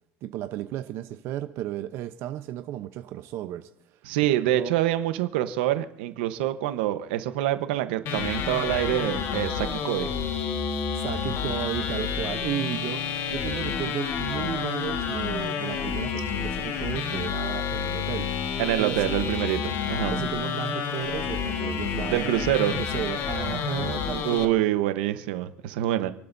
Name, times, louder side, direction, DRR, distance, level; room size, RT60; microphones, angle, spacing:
voice 1, 0.2-3.7 4.3-4.7 11.0-13.0 13.3-19.0 20.1-22.5 22.7-24.6, right 13 dB, 55° right, 8 dB, 0.8 m, -34 dB
voice 2, 4.0-10.1 18.6-20.3 22.1-22.8 24.2-26.1, right 13 dB, 90° right, 9 dB, 1.1 m, -26 dB
sound 1, 8.1-24.5, left 7 dB, 55° left, 1.7 m, -29 dB
29.0 x 11.5 x 2.7 m, 0.78 s
supercardioid pair, 130°, 5 cm